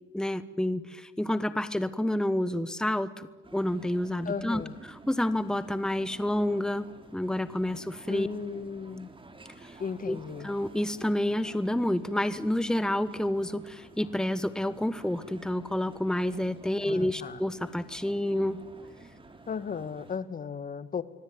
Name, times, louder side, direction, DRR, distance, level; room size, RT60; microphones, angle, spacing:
voice 1, 0.1-6.9 7.1-8.3 9.6-9.8 10.1-18.6, left 1 dB, 5° left, 13 dB, 1.3 m, -29 dB
sound 1, 3.4-20.2, right 2 dB, 25° right, 4.1 m, -51 dB
voice 2, 4.2-4.7 8.1-9.1 9.8-10.5 16.8-17.4 19.5-21.0, left 6 dB, 45° left, 14 dB, 1.7 m, -35 dB
26.0 x 23.0 x 9.7 m, 1.2 s
cardioid pair, 90°, 20 cm